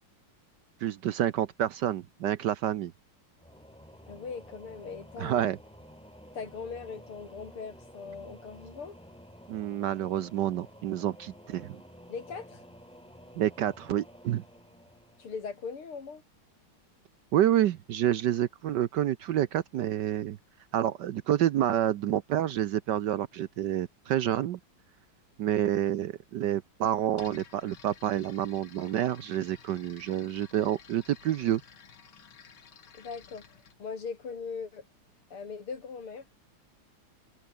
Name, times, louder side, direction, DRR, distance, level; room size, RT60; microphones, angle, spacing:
voice 1, 0.8-2.9 5.2-5.6 9.5-11.8 13.4-14.4 17.3-20.4 20.7-24.6 25.4-31.6, right 11 dB, 65° right, 1.2 m, -28 dB
Singing / Musical instrument, 3.4-16.0, equal, ahead, 3.7 m, -52 dB
voice 2, 4.1-5.5 6.3-9.0 12.1-12.6 15.2-16.2 32.9-34.9 35.3-36.3, left 5 dB, 90° left, 4.2 m, -40 dB
sound 1, 27.1-33.8, left 7 dB, 70° left, 2.8 m, -53 dB
omnidirectional pair, 2.3 m